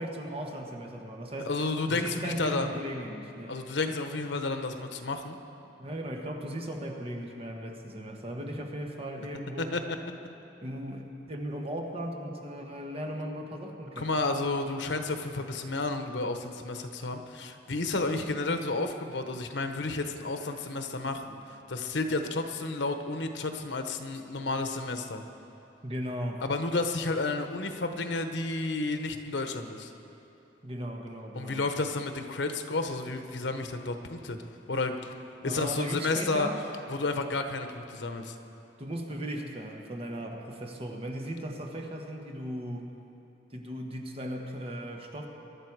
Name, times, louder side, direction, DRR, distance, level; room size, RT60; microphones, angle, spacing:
voice 1, 0.0-1.5 1.9-3.6 5.8-9.8 10.6-14.1 25.8-26.4 30.6-31.6 35.4-36.6 38.8-42.9 43.5-45.3, equal, 35° right, 2 dB, 1.3 m, -37 dB
voice 2, 1.4-2.7 3.5-5.4 9.6-9.8 14.0-21.4 21.7-25.2 26.4-29.9 31.3-34.4 34.7-34.9 35.4-36.5 36.9-38.4, left 3 dB, 85° left, 7 dB, 1.0 m, -31 dB
22.5 x 11.5 x 4.7 m, 2.8 s
head